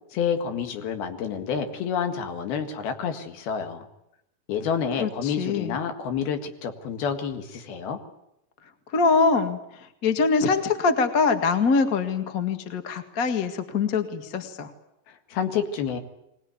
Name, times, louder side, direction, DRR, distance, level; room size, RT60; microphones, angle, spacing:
voice 1, 0.1-3.9 4.5-8.0 15.1-16.0, left 7 dB, 75° left, 6 dB, 3.7 m, -29 dB
voice 2, 5.0-5.8 8.9-9.6 10.0-14.7, left 4 dB, 40° left, 7 dB, 1.3 m, -23 dB
23.5 x 19.0 x 9.5 m, 0.86 s
omnidirectional pair, 4.4 m